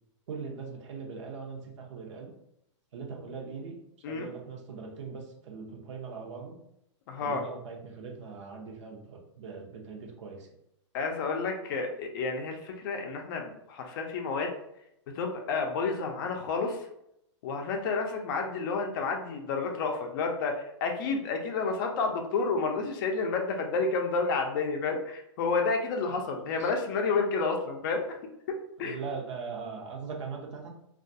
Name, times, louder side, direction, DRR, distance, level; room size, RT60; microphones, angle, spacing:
voice 1, 0.3-2.3 2.9-3.8 4.1-6.6 7.2-10.5 26.6-26.7 28.8-30.7, right 5 dB, 70° right, 1 dB, 0.7 m, -40 dB
voice 2, 7.1-7.4 10.9-14.5 15.1-16.8 17.4-28.2 28.5-29.0, left 4 dB, 45° left, 3 dB, 0.4 m, -30 dB
2.3 x 2.2 x 2.6 m, 0.79 s
hypercardioid pair, 145°, 16 cm